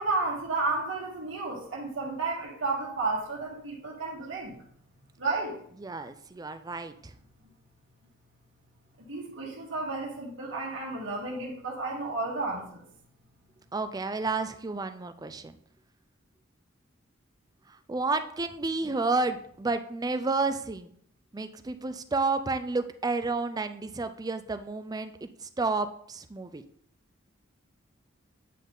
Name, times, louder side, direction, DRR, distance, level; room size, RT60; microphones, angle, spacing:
voice 1, 0.0-4.6 5.2-5.6 9.1-12.8 18.8-18.9, right 3 dB, 65° right, -3 dB, 1.6 m, -32 dB
voice 2, 5.8-7.1 13.7-15.6 17.9-20.9 21.3-26.6, right 3 dB, 20° right, 9 dB, 0.4 m, -31 dB
9.3 x 3.7 x 3.9 m, 0.64 s
head